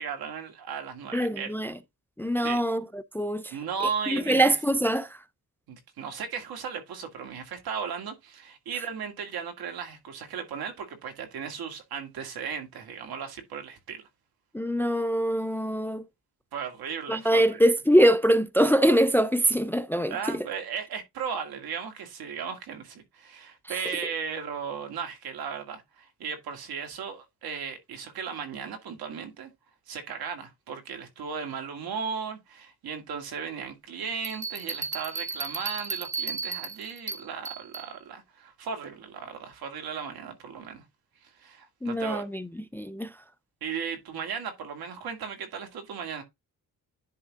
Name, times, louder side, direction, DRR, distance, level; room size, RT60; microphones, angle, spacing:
voice 1, 0.0-1.5 2.4-2.6 3.5-4.6 5.7-14.0 16.5-17.7 20.1-29.5 29.9-40.8 41.2-42.3 43.6-46.2, right 6 dB, 75° right, 2.1 m, -36 dB
voice 2, 1.1-1.7 2.2-3.5 4.1-5.1 14.5-16.0 17.1-20.5 41.8-43.1, right 1 dB, 5° left, 0.3 m, -24 dB
Bell, 34.2-37.9, right 5 dB, 20° right, 0.9 m, -34 dB
10.5 x 3.5 x 3.6 m
cardioid pair, 135°, 37 cm